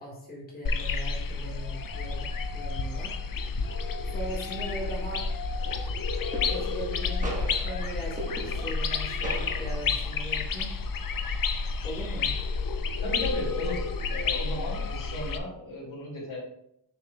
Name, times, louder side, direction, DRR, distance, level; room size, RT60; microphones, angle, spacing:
voice 1, 0.0-2.3 2.5-3.1 4.1-5.2 5.6-6.0 6.5-10.7 11.8-12.3, right 1 dB, 20° left, -4 dB, 1.8 m, -39 dB
sound 1, 0.6-15.4, left 4 dB, 45° left, 0.6 m, -30 dB
sound 2, 5.1-5.5 6.3-6.9 7.2-8.9 9.2-10.0, right 1 dB, 15° right, 1.3 m, -38 dB
voice 2, 13.0-16.4, left 1 dB, 90° left, -5 dB, 2.4 m, -35 dB
7.0 x 6.3 x 2.3 m, 0.74 s
wide cardioid pair, 135°, 46 cm